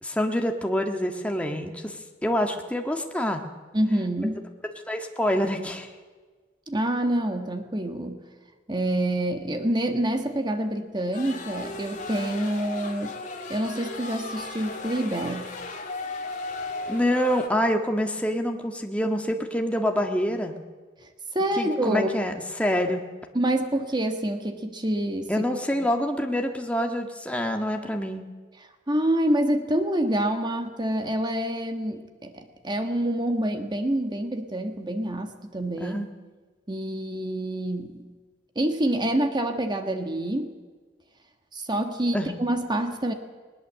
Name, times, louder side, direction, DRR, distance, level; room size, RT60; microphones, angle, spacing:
voice 1, 0.0-3.4 4.9-5.9 16.9-20.5 21.6-23.0 25.3-28.2 35.8-36.1 42.1-42.4, equal, 5° left, 3 dB, 1.6 m, -26 dB
voice 2, 3.7-4.4 6.7-8.2 8.7-13.1 13.5-15.5 21.3-22.1 23.3-25.4 28.9-36.0 36.7-38.1 38.5-40.6 41.5-43.1, right 1 dB, 25° right, 6 dB, 1.5 m, -27 dB
sound 1, 11.1-17.5, left 3 dB, 40° left, 2.7 m, -36 dB
20.5 x 19.5 x 7.6 m, 1.4 s
head